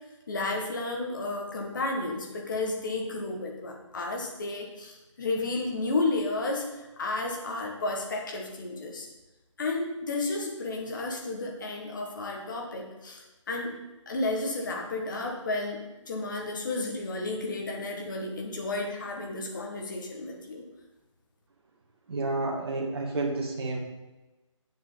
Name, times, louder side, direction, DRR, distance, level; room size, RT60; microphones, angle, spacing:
voice 1, 0.3-9.1 9.6-13.8 14.1-20.6, left 2 dB, 35° left, 1 dB, 1.6 m, -32 dB
voice 2, 22.1-23.8, right 2 dB, 50° right, -2 dB, 2.1 m, -30 dB
8.9 x 7.4 x 4.0 m, 1.1 s
hypercardioid pair, 170°, 17 cm